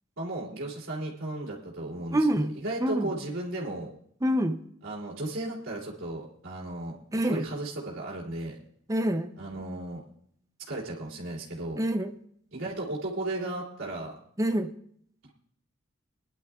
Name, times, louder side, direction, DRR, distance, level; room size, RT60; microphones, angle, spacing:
voice 1, 0.2-3.9 4.8-7.0 7.3-8.6 9.4-10.0 10.7-11.8 12.5-14.1, right 2 dB, 80° right, -5 dB, 2.8 m, -35 dB
voice 2, 2.1-2.5 2.8-3.1 4.2-4.6 7.1-7.5 8.9-9.3 11.8-12.1 14.4-14.7, right 1 dB, 15° right, 8 dB, 0.5 m, -26 dB
23.5 x 11.0 x 2.4 m, 0.66 s
head